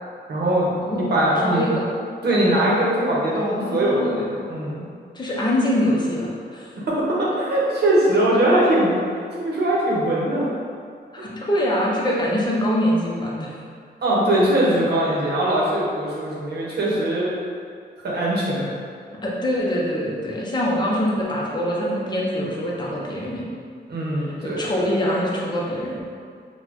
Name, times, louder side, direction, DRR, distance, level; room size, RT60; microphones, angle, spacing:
voice 1, 0.3-1.7 2.2-4.9 6.8-8.9 9.3-10.5 14.0-17.3 18.0-18.7 23.9-24.7, right 1 dB, 70° right, -5 dB, 0.8 m, -21 dB
voice 2, 1.4-1.9 3.4-4.2 5.1-6.7 11.1-13.6 19.2-23.4 24.4-26.0, equal, 25° left, -4 dB, 0.6 m, -24 dB
4.1 x 2.2 x 2.9 m, 2.2 s
wide cardioid pair, 165°, 17 cm